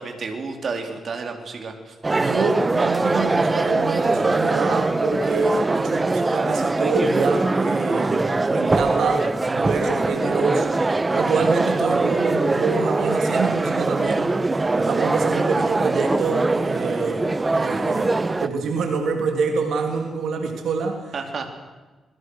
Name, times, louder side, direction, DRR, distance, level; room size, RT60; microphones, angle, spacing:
voice 1, 0.0-1.9 21.1-21.5, right 4 dB, 50° right, 4 dB, 4.0 m, -31 dB
sound 1, 2.0-18.5, right 3 dB, 25° right, 1.2 m, -22 dB
voice 2, 2.1-14.3 14.7-21.1, right 4 dB, 80° right, 4 dB, 3.0 m, -26 dB
27.5 x 22.0 x 6.5 m, 1.2 s
cardioid pair, 105°, 0 cm